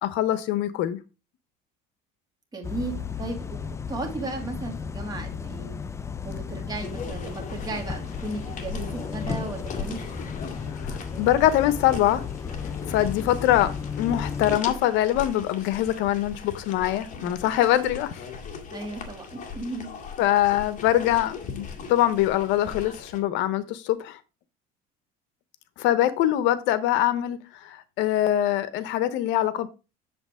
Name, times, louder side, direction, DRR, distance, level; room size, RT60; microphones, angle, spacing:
voice 1, 0.0-1.0 10.8-12.2 12.9-13.7 14.0-18.2 20.2-24.2 25.8-29.7, left 13 dB, 65° left, 0.9 m, -23 dB
voice 2, 2.5-5.8 6.2-10.2 18.7-19.9, right 2 dB, 20° right, 2.5 m, -35 dB
sound 1, 2.6-14.6, left 6 dB, 15° left, 0.3 m, -34 dB
sound 2, 6.7-23.2, left 5 dB, 40° left, 1.9 m, -39 dB
8.0 x 7.1 x 3.7 m
cardioid pair, 125°, 20 cm